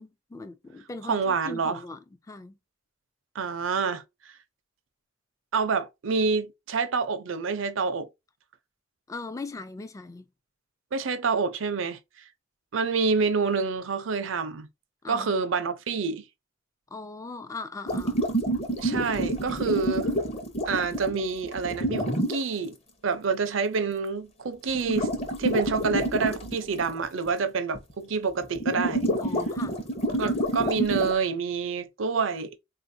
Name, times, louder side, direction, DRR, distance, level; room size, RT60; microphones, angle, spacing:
voice 1, 0.0-2.6 9.1-10.3 15.0-15.4 16.9-18.2 29.2-29.8, left 3 dB, 15° left, 0.3 m, -39 dB
voice 2, 1.0-1.8 3.3-4.0 5.5-8.1 10.9-12.0 12.7-14.7 15.1-16.2 18.8-20.1 20.7-22.8 23.0-25.1 25.4-29.1 30.2-32.6, right 5 dB, 75° right, 0.5 m, -27 dB
sound 1, 17.9-22.4 24.5-24.6 24.7-27.0 27.3-27.4 27.8-27.9 28.4-31.1, right 1 dB, 35° left, 0.7 m, -28 dB
3.7 x 2.5 x 2.6 m
head